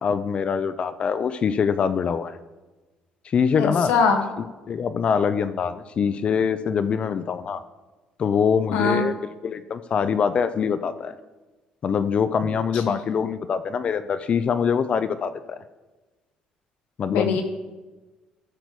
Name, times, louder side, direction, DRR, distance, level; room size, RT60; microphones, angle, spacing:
voice 1, 0.0-2.4 3.2-3.9 4.7-7.6 8.2-9.2 9.4-11.1 11.8-15.6 17.0-17.4, left 6 dB, 45° left, 11 dB, 0.5 m, -24 dB
voice 2, 3.6-4.2 8.7-9.1 12.9-13.0 17.1-17.4, left 5 dB, 90° left, 4 dB, 1.3 m, -22 dB
12.0 x 6.6 x 4.7 m, 1.2 s
cardioid pair, 95°, 3 cm